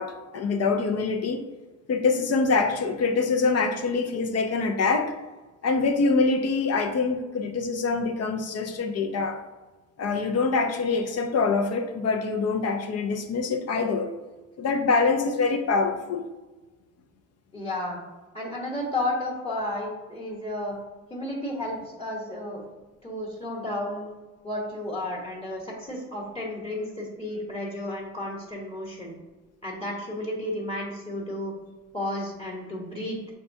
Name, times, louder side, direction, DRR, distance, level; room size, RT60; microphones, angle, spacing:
voice 1, 0.0-1.4 1.9-5.1 5.6-9.4 10.0-14.1 14.6-16.2, left 4 dB, 55° left, 5 dB, 0.6 m, -25 dB
voice 2, 17.5-18.0 18.3-20.8 21.1-22.6 23.0-24.1 24.4-29.1 29.6-31.5 31.9-33.2, left 1 dB, 20° left, -3 dB, 1.2 m, -32 dB
6.4 x 2.3 x 2.7 m, 1.1 s
cardioid pair, 90°, 30 cm